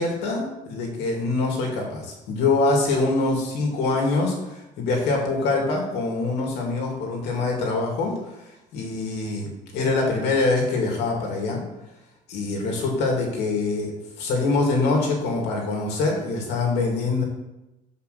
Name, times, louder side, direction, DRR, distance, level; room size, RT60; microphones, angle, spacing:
voice 1, 0.0-8.1 8.7-11.6 12.3-13.9 14.2-17.2, left 3 dB, 90° left, 0 dB, 2.3 m, -24 dB
5.9 x 5.4 x 6.7 m, 0.95 s
cardioid pair, 110°, 17 cm